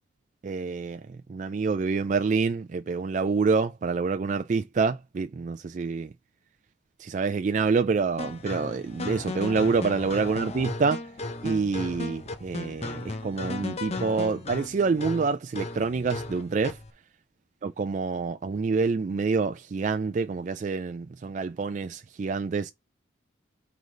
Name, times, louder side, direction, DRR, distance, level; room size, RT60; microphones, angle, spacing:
voice 1, 0.4-1.0 1.3-6.1 7.0-11.0 11.4-16.8 17.6-22.7, right 4 dB, 40° right, 0.3 m, -27 dB
sound 1, 8.2-16.9, left 2 dB, 35° left, 0.7 m, -36 dB
4.7 x 3.9 x 5.2 m
head